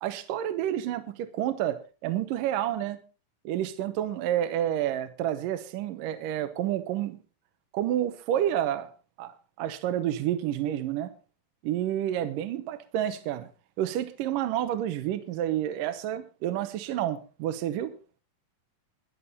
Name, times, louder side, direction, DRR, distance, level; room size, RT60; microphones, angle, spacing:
voice 1, 0.0-3.0 3.4-7.2 7.7-8.9 9.2-9.3 9.6-11.1 11.6-13.5 13.8-17.9, right 11 dB, 75° right, 2.5 m, -29 dB
22.5 x 7.5 x 4.1 m
omnidirectional pair, 4.1 m